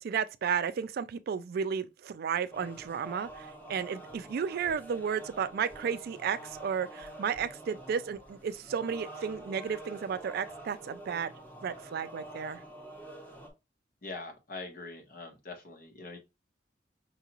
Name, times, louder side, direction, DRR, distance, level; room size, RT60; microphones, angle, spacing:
voice 1, 0.0-11.3 11.6-12.6, right 7 dB, 55° right, 0.3 m, -33 dB
sound 1, 2.5-13.5, right 1 dB, 10° left, 1.0 m, -47 dB
voice 2, 14.0-16.2, left 3 dB, 50° left, 1.1 m, -43 dB
5.5 x 2.5 x 2.9 m
head